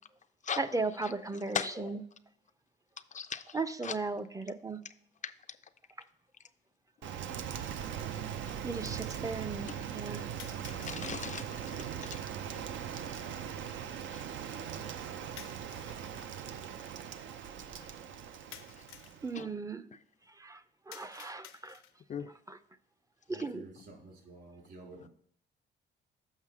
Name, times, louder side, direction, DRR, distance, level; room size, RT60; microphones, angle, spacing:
voice 1, 0.6-2.0 3.5-4.8 8.6-10.2 19.2-19.8 20.4-20.6 20.9-21.8 22.5-22.6 23.3-23.6, right 3 dB, 15° right, 12 dB, 0.5 m, -36 dB
voice 2, 1.5-2.0 3.1-3.6 3.8-4.0 5.2-5.3 10.7-12.2 14.1-14.2 19.3-19.5 22.1-22.3, left 7 dB, 40° left, 9 dB, 0.4 m, -38 dB
sound 1, 6.0-6.1 7.1-7.2 10.4-11.1 15.4-16.3 18.5-19.2 20.9-22.1, left 10 dB, 90° left, 0.7 m, -52 dB
Rain, 7.0-19.4, right 8 dB, 75° right, 0.6 m, -40 dB
voice 3, 23.3-25.1, right 2 dB, 55° right, -1 dB, 3.7 m, -51 dB
7.4 x 5.6 x 4.8 m, 0.67 s
cardioid pair, 90°, 20 cm